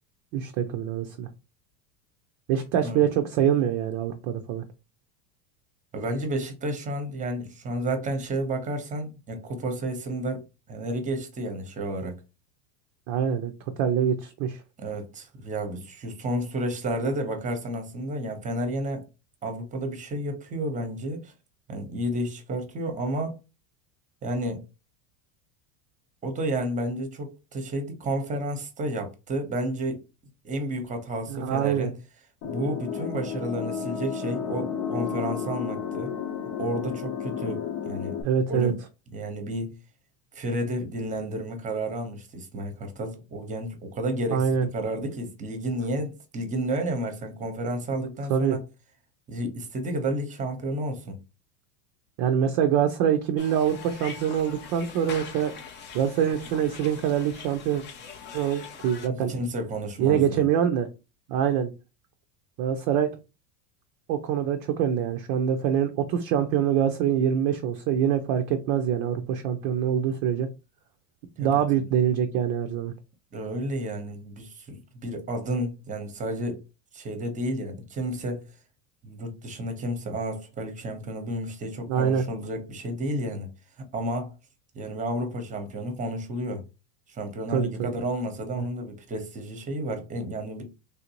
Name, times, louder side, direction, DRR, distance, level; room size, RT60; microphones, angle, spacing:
voice 1, 0.3-1.3 2.5-4.6 13.1-13.5 13.8-14.6 31.3-31.9 38.2-38.7 44.3-44.7 48.3-48.6 52.2-55.5 55.9-57.8 58.3-59.3 60.0-60.9 61.3-61.7 62.6-63.1 64.1-70.5 71.4-72.9 81.9-82.2 87.5-87.9, right 9 dB, 40° right, 0.4 m, -24 dB
voice 2, 5.9-10.4 10.7-12.2 14.8-19.0 19.4-21.3 21.7-23.4 24.2-24.6 26.2-30.0 30.4-31.9 32.4-36.1 36.6-38.2 38.5-38.8 39.1-39.7 40.3-48.6 49.3-51.2 59.1-60.4 71.4-71.5 71.7-71.9 73.3-76.6 76.9-78.4 79.0-83.5 83.9-84.3 84.7-86.6 87.1-90.6, right 1 dB, 15° right, 0.8 m, -31 dB
sound 1, 32.4-38.2, left 7 dB, 75° left, 0.9 m, -32 dB
sound 2, 53.4-59.1, left 6 dB, 25° left, 0.4 m, -43 dB
3.5 x 2.6 x 2.9 m
supercardioid pair, 130°, 49 cm